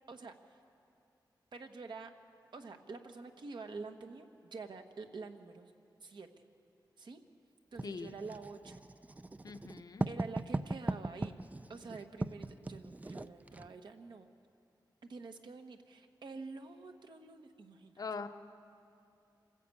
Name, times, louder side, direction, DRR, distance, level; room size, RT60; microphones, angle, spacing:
voice 1, 0.1-0.6 1.5-2.1 2.5-5.7 6.0-6.3 7.0-7.2 7.7-8.8 10.1-11.4 11.7-14.3 15.0-18.0, right 4 dB, 70° right, 5 dB, 1.4 m, -47 dB
voice 2, 7.8-8.1 9.4-10.1 18.0-18.3, left 4 dB, 50° left, 7 dB, 0.8 m, -42 dB
Writing, 7.8-13.7, right 2 dB, 20° right, 0.4 m, -39 dB
26.5 x 14.5 x 8.6 m, 2.5 s
wide cardioid pair, 125°, 8 cm